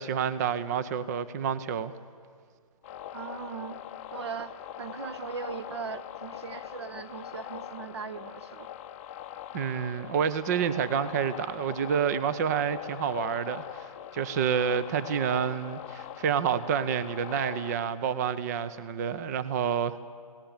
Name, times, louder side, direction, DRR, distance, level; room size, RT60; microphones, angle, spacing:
voice 1, 0.0-1.9 9.5-20.0, right 7 dB, 25° right, 14 dB, 0.7 m, -29 dB
sound 1, 2.8-17.8, left 11 dB, 20° left, 0.7 m, -42 dB
voice 2, 3.1-3.8 4.1-8.7, right 6 dB, 45° right, 13 dB, 1.2 m, -39 dB
29.5 x 18.0 x 7.3 m, 2.1 s
figure-of-eight pair, 140°, 19 cm